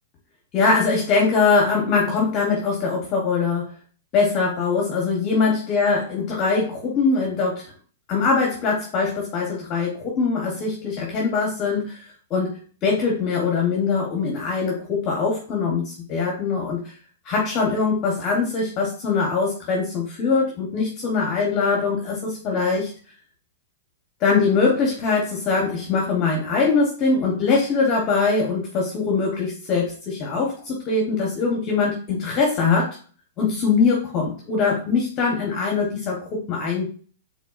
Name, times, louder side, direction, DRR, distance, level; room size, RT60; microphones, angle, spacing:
voice 1, 0.5-3.7 4.1-7.7 8.1-16.8 17.2-22.9 24.2-33.0 33.4-36.9, left 4 dB, 35° left, 0 dB, 1.1 m, -22 dB
4.6 x 3.5 x 2.4 m, 0.40 s
hypercardioid pair, 125°, 0 cm